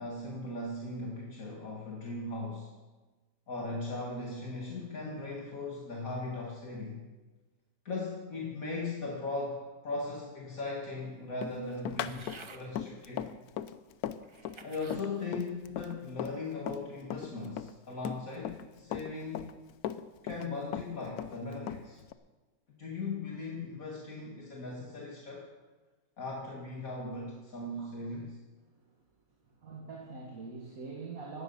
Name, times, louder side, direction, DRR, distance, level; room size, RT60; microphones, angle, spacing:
voice 1, 0.0-2.7 3.5-7.0 7.8-12.2 12.5-13.3 14.6-19.5 20.2-22.0 22.8-25.5 26.2-28.4, left 3 dB, 65° left, -2 dB, 2.3 m, -38 dB
Run, 11.4-16.8 17.1-18.7 18.9-20.5 20.7-22.1, left 10 dB, 85° left, 1.2 m, -38 dB
sound 1, 12.0-12.7 13.5-13.6 14.2-15.0 15.6-16.0, right 4 dB, 35° right, 0.5 m, -51 dB
voice 2, 27.8-28.2 29.4-31.4, right 4 dB, 70° right, -2 dB, 2.5 m, -44 dB
17.0 x 12.5 x 5.5 m, 1.2 s
omnidirectional pair, 1.6 m